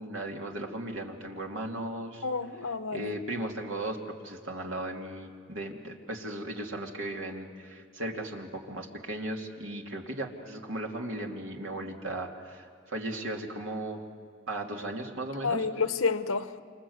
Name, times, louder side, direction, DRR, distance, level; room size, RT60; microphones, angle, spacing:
voice 1, 0.0-2.2 2.9-14.1 14.5-15.6, right 1 dB, 70° right, 2.8 m, -36 dB
voice 2, 2.2-3.1 15.4-16.6, left 4 dB, 85° left, 1.0 m, -30 dB
28.0 x 26.5 x 8.1 m
head